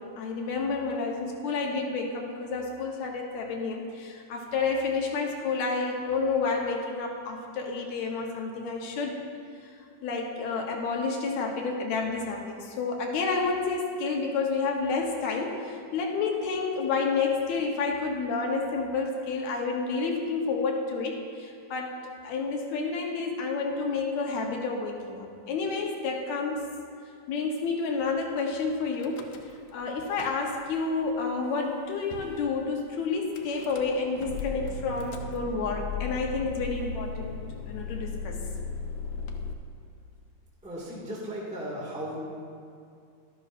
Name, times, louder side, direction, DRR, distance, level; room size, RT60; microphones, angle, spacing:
voice 1, 0.0-9.2 9.6-9.8 10.0-26.7 27.3-29.2 29.7-37.4 37.7-38.4, left 4 dB, 75° left, 1 dB, 2.1 m, -30 dB
Car / Engine starting / Idling, 28.9-29.7 30.0-30.8 31.4-31.5 31.7-31.8 32.1-32.4 33.3-39.5, left 4 dB, 90° left, 2.2 m, -37 dB
voice 2, 40.6-42.2, equal, 5° right, -6 dB, 0.7 m, -36 dB
12.5 x 11.5 x 2.5 m, 2.4 s
omnidirectional pair, 3.5 m